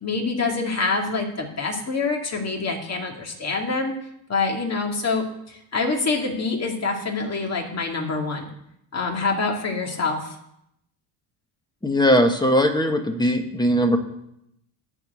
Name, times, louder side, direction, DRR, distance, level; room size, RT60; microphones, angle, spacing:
voice 1, 0.0-3.9 4.3-8.5 8.9-10.4, left 3 dB, 35° left, 1 dB, 2.5 m, -26 dB
voice 2, 11.8-14.0, equal, 10° left, 5 dB, 1.5 m, -19 dB
10.5 x 4.8 x 8.0 m, 0.79 s
supercardioid pair, 90°, 44 cm